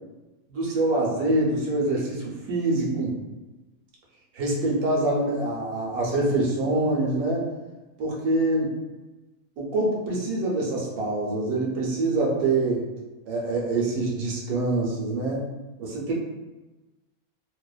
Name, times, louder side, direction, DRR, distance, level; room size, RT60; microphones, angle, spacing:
voice 1, 0.5-3.2 4.3-7.5 8.0-8.7 9.6-12.8 13.3-15.4 15.8-16.1, right 2 dB, 80° right, -3 dB, 1.1 m, -25 dB
2.8 x 2.1 x 2.3 m, 1.1 s
omnidirectional pair, 1.6 m